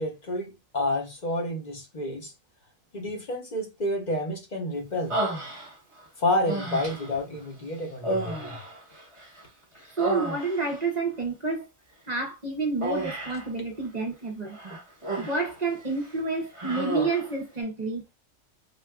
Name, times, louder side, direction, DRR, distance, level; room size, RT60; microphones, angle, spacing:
voice 1, 0.0-2.3 2.9-5.2 6.2-8.6, left 1 dB, 45° left, 0.9 m, -29 dB
Human voice, 5.1-6.0 6.5-7.2 8.0-9.4 9.8-10.8 12.8-13.5 14.5-15.6 15.9-16.1 16.6-17.3, right 1 dB, 30° right, 1.1 m, -32 dB
voice 2, 10.0-11.7 12.1-14.6 15.2-18.0, right 3 dB, 45° right, 0.7 m, -29 dB
3.8 x 2.4 x 2.3 m
omnidirectional pair, 1.2 m